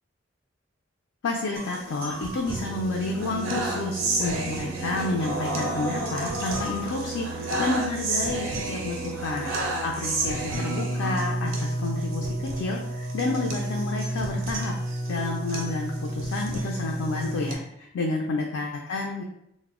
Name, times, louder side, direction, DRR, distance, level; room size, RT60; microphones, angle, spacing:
voice 1, 1.2-12.3 12.6-14.7 15.1-19.2, left 2 dB, 80° left, -1 dB, 0.3 m, -30 dB
sound 1, 1.6-17.6, right 1 dB, 80° right, 0.5 m, -30 dB
sound 2, 1.9-9.1, equal, 15° right, 0.3 m, -45 dB
2.0 x 2.0 x 3.4 m, 0.78 s
head